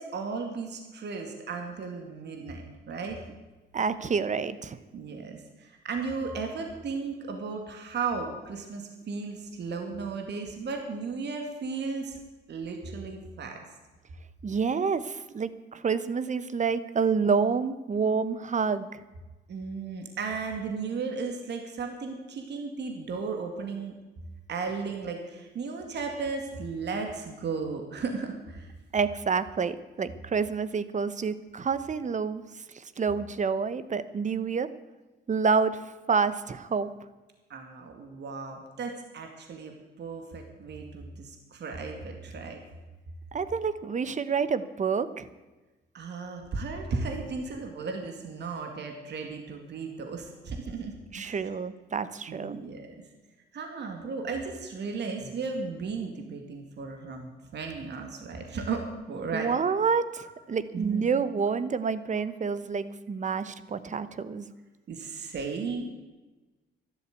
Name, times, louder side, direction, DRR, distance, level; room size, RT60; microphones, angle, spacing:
voice 1, 0.0-3.2 4.9-12.2 12.5-13.6 19.5-23.9 24.5-28.7 37.5-42.6 45.9-51.5 52.3-53.0 53.5-59.5 60.7-61.1 64.9-65.9, right 4 dB, 60° right, 4 dB, 2.3 m, -35 dB
voice 2, 3.7-4.8 14.4-19.0 28.9-32.4 32.7-34.7 35.3-35.8 36.1-36.9 43.3-45.3 51.1-52.6 59.3-64.5, right 5 dB, 40° right, 14 dB, 1.0 m, -28 dB
12.5 x 12.0 x 8.4 m, 1.2 s
cardioid pair, 90°, 20 cm